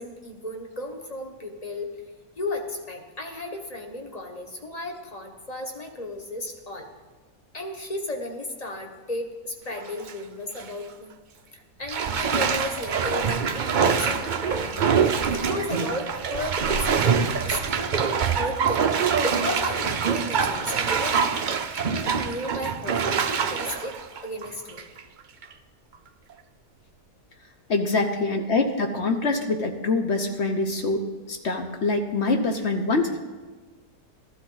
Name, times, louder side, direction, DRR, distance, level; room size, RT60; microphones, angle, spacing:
voice 1, 0.0-1.9 2.4-6.9 7.5-11.1 11.8-18.8 19.2-21.3 21.9-23.9 24.2-24.8, left 1 dB, 25° left, 3 dB, 1.2 m, -34 dB
Bathtub (filling or washing), 9.7-10.1 10.6-10.7 11.9-25.0 25.4-25.5, right 6 dB, 65° right, 0.4 m, -25 dB
voice 2, 27.7-31.0 31.3-33.2, left 3 dB, 50° left, 5 dB, 1.0 m, -24 dB
14.5 x 12.5 x 3.9 m, 1.3 s
omnidirectional pair, 1.6 m